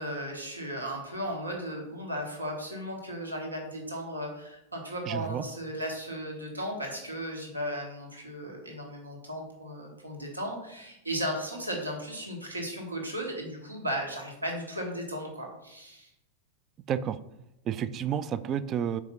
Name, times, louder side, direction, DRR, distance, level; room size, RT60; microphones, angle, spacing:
voice 1, 0.0-16.1, equal, 85° right, 0 dB, 1.3 m, -36 dB
voice 2, 5.1-5.4 16.9-17.2 17.7-19.0, right 9 dB, 30° right, 14 dB, 0.3 m, -30 dB
4.9 x 4.6 x 5.5 m, 0.88 s
figure-of-eight pair, 90°, 0 cm